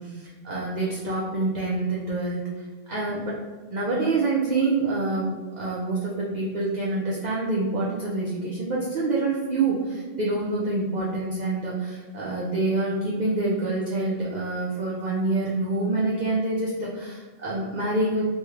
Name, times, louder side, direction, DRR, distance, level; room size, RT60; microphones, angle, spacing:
voice 1, 0.0-3.4 3.7-5.3 5.6-18.2, right 2 dB, 55° right, -5 dB, 0.5 m, -26 dB
3.2 x 2.3 x 3.1 m, 1.4 s
omnidirectional pair, 1.2 m